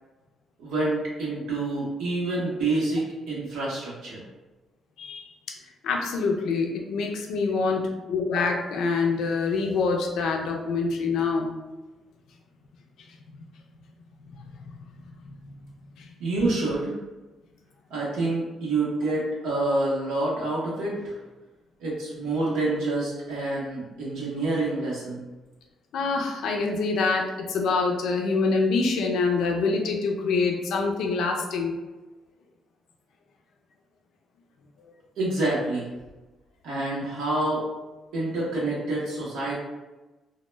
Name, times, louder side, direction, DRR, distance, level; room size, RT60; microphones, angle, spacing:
voice 1, 0.6-4.2 16.2-16.9 17.9-21.2 21.8-25.2 35.2-35.9 36.6-37.6 38.1-39.5, right 2 dB, 90° right, -6 dB, 0.7 m, -27 dB
voice 2, 5.0-5.3 5.8-11.5 13.4-13.5 15.4-15.5 16.0-16.1 25.9-31.7, left 4 dB, 80° left, 2 dB, 0.4 m, -25 dB
2.1 x 2.0 x 3.1 m, 1.1 s
cardioid pair, 90°, 0 cm